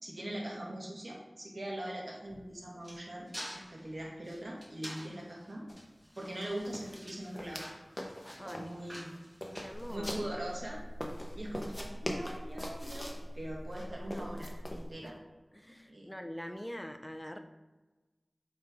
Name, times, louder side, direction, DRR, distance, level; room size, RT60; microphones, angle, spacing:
voice 1, 0.0-3.3 3.7-5.7 6.2-7.6 8.3-9.1 9.6-10.8 11.3-15.2 15.9-16.1, right 1 dB, 60° right, -2 dB, 1.5 m, -41 dB
sound 1, 2.2-10.5, equal, 20° right, 1.7 m, -49 dB
sound 2, 5.7-5.8 6.1-6.3 6.6-7.7 8.0-8.7 9.1-10.5 11.0-13.2 13.7-14.8, left 1 dB, 35° left, 1.0 m, -42 dB
voice 2, 8.3-8.7 9.5-10.2 15.5-17.4, equal, 10° left, 6 dB, 0.6 m, -44 dB
sound 3, 9.7-14.9, equal, 40° right, 0.9 m, -44 dB
8.4 x 3.5 x 3.7 m, 1.2 s
wide cardioid pair, 60°, 0 cm